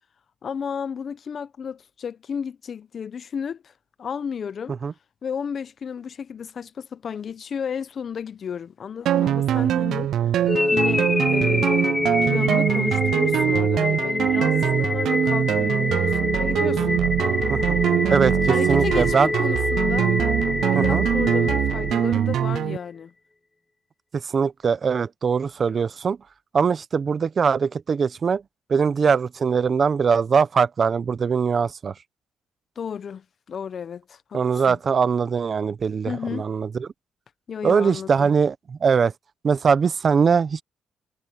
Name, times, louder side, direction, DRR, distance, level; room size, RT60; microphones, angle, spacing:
voice 1, 0.4-3.7 4.0-4.8 5.2-10.1 10.7-17.0 18.5-20.2 20.8-23.1 32.8-34.8 36.1-36.4 37.5-38.3, left 7 dB, 50° left, 0.8 m, -33 dB
sound 1, 9.1-22.8, right 11 dB, 75° right, 0.3 m, -23 dB
sound 2, 10.5-22.5, left 3 dB, 20° left, 0.4 m, -25 dB
voice 2, 18.1-19.3 20.7-21.0 24.1-26.2 26.5-28.4 28.7-31.9 34.3-36.9 37.6-39.1 39.4-40.6, right 6 dB, 45° right, 0.9 m, -21 dB
cardioid pair, 90°, 0 cm